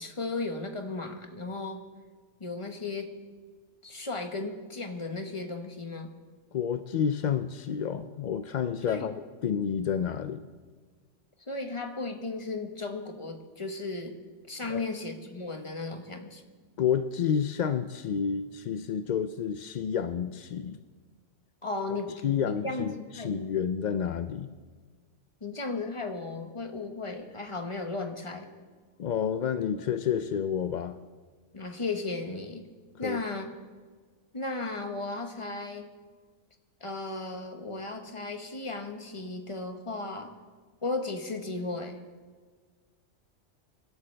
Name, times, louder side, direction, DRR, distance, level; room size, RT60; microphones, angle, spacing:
voice 1, 0.0-1.8 2.4-3.2 3.8-6.1 8.9-9.1 11.5-14.2 14.5-16.4 21.6-22.1 22.4-23.5 25.4-28.5 31.5-32.7 33.0-33.5 34.3-35.9 36.8-40.4 40.8-42.0, left 3 dB, 25° left, 5 dB, 1.3 m, -35 dB
voice 2, 6.5-10.4 14.7-14.9 16.8-20.8 22.2-24.5 29.0-31.0 33.0-33.2, left 7 dB, 60° left, 10 dB, 0.4 m, -30 dB
24.5 x 12.5 x 3.4 m, 1.5 s
omnidirectional pair, 1.3 m